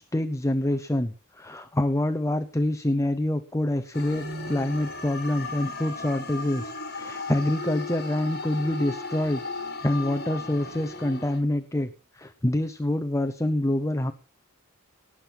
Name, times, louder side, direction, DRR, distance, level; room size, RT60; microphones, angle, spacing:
voice 1, 0.0-9.4 9.8-14.1, left 1 dB, 15° left, 9 dB, 0.8 m, -26 dB
sound 1, 3.9-11.4, left 3 dB, 45° left, 4.3 m, -36 dB
19.0 x 7.6 x 6.0 m, 0.37 s
head